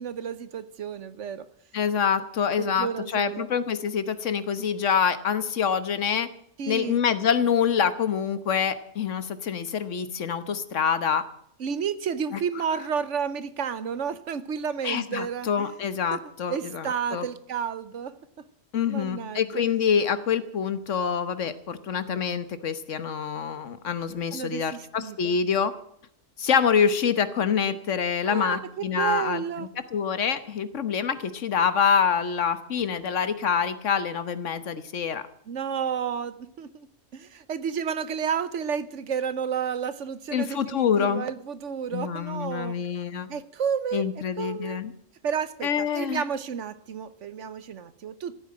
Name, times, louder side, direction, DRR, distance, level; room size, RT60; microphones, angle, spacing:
voice 1, 0.0-1.5 2.6-3.5 6.6-7.0 11.6-15.7 16.1-16.2 16.5-18.2 18.9-19.6 24.3-25.4 28.2-29.7 35.5-36.9 37.1-42.8 43.3-44.0 44.4-44.8 45.2-48.3, right 7 dB, 70° right, 15 dB, 1.2 m, -31 dB
voice 2, 1.7-6.3 6.7-11.2 14.8-17.3 18.7-25.7 26.4-29.4 29.9-35.2 40.3-41.3 41.9-43.3 43.9-44.9 45.6-46.2, left 7 dB, 75° left, 13 dB, 1.4 m, -26 dB
15.0 x 8.9 x 8.7 m, 0.70 s
omnidirectional pair, 1.3 m